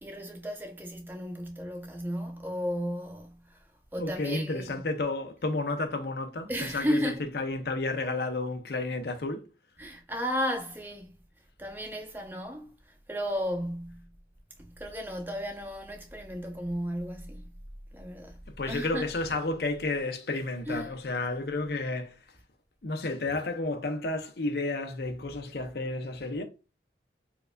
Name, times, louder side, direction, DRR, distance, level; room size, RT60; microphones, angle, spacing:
voice 1, 0.0-3.4 3.9-4.9 6.5-7.3 9.8-11.1 11.6-14.1 14.6-17.5 17.9-18.4 18.7-19.1 20.7-20.9, equal, 10° right, 0.6 m, -34 dB
voice 2, 4.0-9.5 18.6-22.2 22.8-26.4, left 2 dB, 60° left, 0.6 m, -31 dB
4.5 x 2.5 x 2.2 m
head